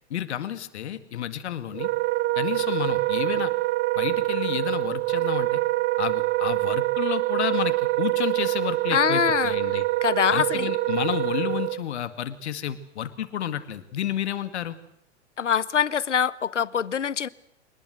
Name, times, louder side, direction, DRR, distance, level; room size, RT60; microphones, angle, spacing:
voice 1, 0.1-1.9 2.4-3.5 4.0-5.6 6.0-9.8 10.3-14.8, left 10 dB, 70° left, 2.2 m, -30 dB
Wind instrument woodwind instrument, 1.7-11.8, right 19 dB, 30° right, 0.9 m, -25 dB
voice 2, 8.9-9.5 10.0-10.7 15.4-17.3, left 8 dB, 85° left, 1.0 m, -24 dB
25.0 x 20.0 x 7.9 m
figure-of-eight pair, 100°, 35 cm